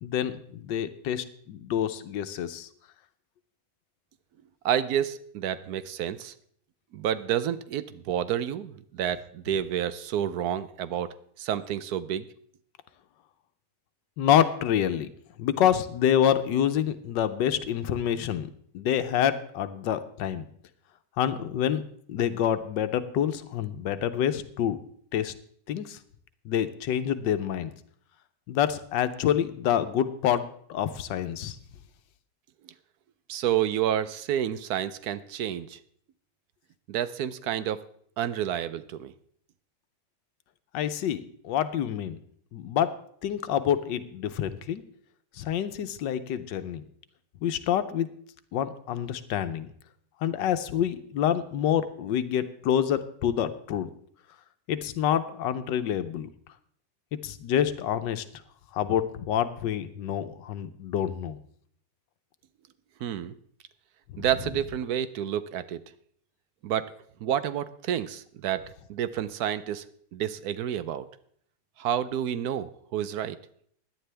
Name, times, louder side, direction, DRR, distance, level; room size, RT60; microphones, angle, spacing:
voice 1, 0.0-2.7 14.2-15.1 15.4-18.5 18.7-20.5 21.2-21.8 22.1-24.8 25.1-25.3 25.7-26.0 26.4-27.7 28.5-30.4 30.7-31.6 40.7-42.2 42.5-42.9 43.2-44.8 45.4-46.8 47.4-48.1 48.5-49.7 50.2-53.9 54.7-56.3 57.2-58.2 58.7-61.4 64.1-64.3, left 10 dB, 90° left, 11 dB, 1.4 m, -27 dB
voice 2, 4.6-6.3 6.9-12.3 33.3-35.8 36.9-37.8 38.2-39.1 63.0-63.3 64.2-65.8 66.6-66.9 67.2-69.8 70.1-71.1 71.8-73.4, right 10 dB, 70° right, 14 dB, 1.1 m, -29 dB
17.0 x 10.5 x 3.4 m, 0.63 s
omnidirectional pair, 1.9 m